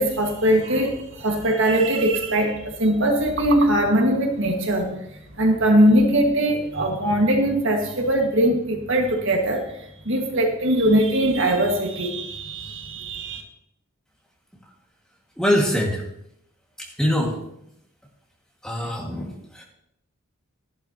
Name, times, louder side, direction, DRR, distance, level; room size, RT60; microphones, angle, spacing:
voice 1, 0.0-5.0 5.4-9.6 10.1-13.4, right 1 dB, 60° right, 1 dB, 1.8 m, -21 dB
voice 2, 15.4-16.0 17.0-17.3 18.6-19.3 19.5-19.6, equal, 5° left, -2 dB, 1.9 m, -22 dB
13.0 x 11.5 x 2.9 m, 0.78 s
head